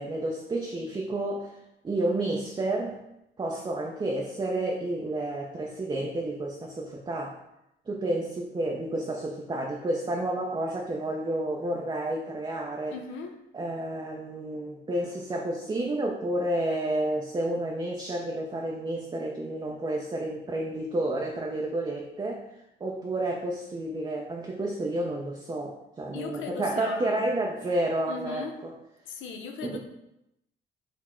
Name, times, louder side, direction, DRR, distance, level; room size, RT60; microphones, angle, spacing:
voice 1, 0.0-1.6 1.8-3.0 3.4-7.4 7.9-13.0 13.5-22.4 22.8-28.7 29.6-29.8, right 1 dB, 20° right, -1 dB, 0.5 m, -30 dB
voice 2, 12.9-13.3 26.1-27.3 28.1-28.6 29.1-29.8, left 5 dB, 80° left, 4 dB, 0.5 m, -38 dB
4.1 x 2.0 x 4.3 m, 0.86 s
cardioid pair, 90°, 20 cm